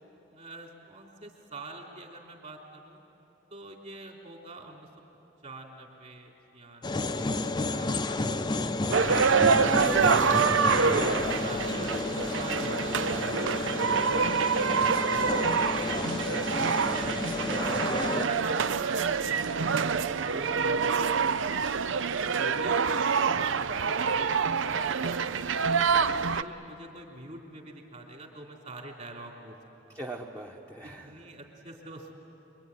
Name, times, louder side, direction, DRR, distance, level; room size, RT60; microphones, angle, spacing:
voice 1, 0.3-3.0 3.5-4.9 5.4-8.8 10.8-15.5 15.8-17.6 17.9-21.9 22.4-25.8 26.1-29.6 29.9-30.0 31.1-32.1, right 2 dB, 40° right, 0 dB, 3.5 m, -46 dB
sound 1, 6.8-18.3, left 2 dB, 25° left, 0.7 m, -31 dB
voice 2, 8.8-10.0 26.2-26.5 29.9-31.3, right 1 dB, 15° right, -1 dB, 1.2 m, -44 dB
sound 2, 8.9-26.4, right 5 dB, 75° right, 0.6 m, -26 dB
26.0 x 23.0 x 9.7 m, 3.0 s
head